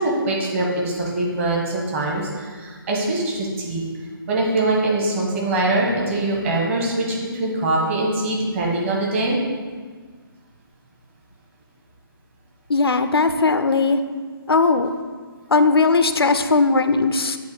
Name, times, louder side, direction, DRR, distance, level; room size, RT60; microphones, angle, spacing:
voice 1, 0.0-3.8 4.3-7.0 7.3-9.4, right 2 dB, 30° right, -2 dB, 1.3 m, -23 dB
voice 2, 12.7-14.0 14.5-14.9 15.5-17.4, left 3 dB, 85° left, 9 dB, 0.5 m, -18 dB
7.7 x 2.7 x 5.5 m, 1.5 s
figure-of-eight pair, 150°, 13 cm